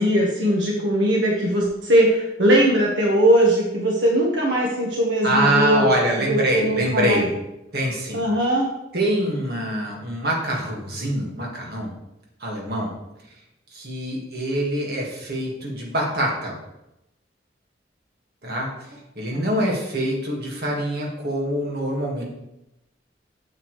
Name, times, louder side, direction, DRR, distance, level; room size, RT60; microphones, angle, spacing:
voice 1, 0.0-5.9 6.2-7.3 8.1-8.7 19.3-19.4, right 1 dB, 80° right, -2 dB, 1.4 m, -20 dB
voice 2, 5.2-7.3 7.7-8.2 8.9-12.0 12.4-12.9 13.7-16.6 18.4-18.7 19.2-22.2, right 1 dB, 55° right, -2 dB, 1.9 m, -24 dB
7.7 x 7.5 x 3.2 m, 0.88 s
head